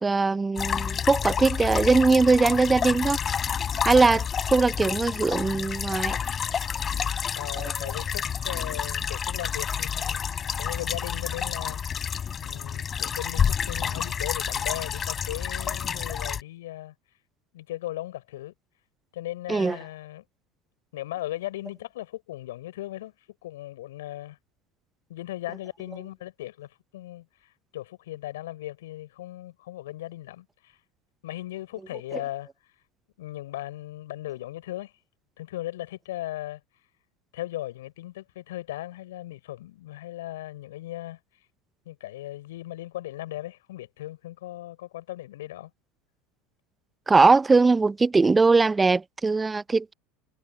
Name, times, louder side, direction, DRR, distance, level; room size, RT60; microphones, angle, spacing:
voice 1, 0.0-3.2 3.8-6.2 7.6-7.7 19.5-19.8 47.1-49.9, right 3 dB, 15° right, 0.8 m, -21 dB
sound 1, 0.6-16.4, left 7 dB, 30° left, 5.6 m, -29 dB
voice 2, 7.3-10.3 10.6-11.8 12.4-16.9 17.5-18.5 19.1-20.2 20.9-23.1 23.4-24.4 25.1-30.8 31.2-32.5 33.2-34.9 35.4-36.6 37.3-41.2 41.9-45.7, left 15 dB, 70° left, 5.7 m, -37 dB
figure-of-eight pair, 75°, 0 cm